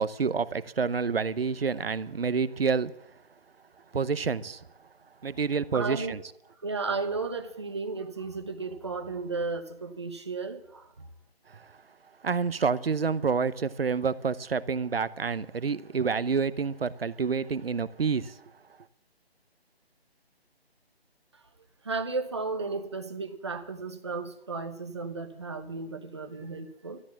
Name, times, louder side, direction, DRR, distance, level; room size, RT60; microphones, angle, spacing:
voice 1, 0.0-2.9 3.9-4.6 5.2-6.2 11.5-11.6 12.2-18.4, right 5 dB, 65° right, 0.9 m, -28 dB
voice 2, 5.7-6.2 6.6-11.1 21.8-27.0, right 4 dB, 25° right, 1.0 m, -34 dB
13.0 x 11.0 x 7.3 m
figure-of-eight pair, 175°, 31 cm